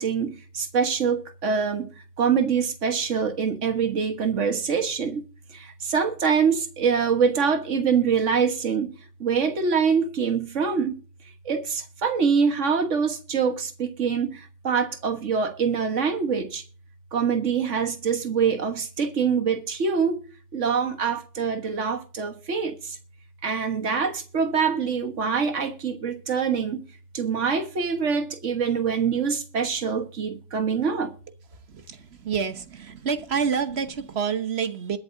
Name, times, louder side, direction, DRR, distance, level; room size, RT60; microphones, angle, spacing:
voice 1, 0.0-1.9 2.2-8.9 9.2-11.0 11.4-16.6 17.1-20.2 20.5-23.0 23.4-26.8 27.1-31.1, right 6 dB, 85° right, 1.8 m, -25 dB
voice 2, 32.2-35.0, right 6 dB, 60° right, 1.3 m, -27 dB
21.5 x 7.9 x 2.7 m
omnidirectional pair, 1.2 m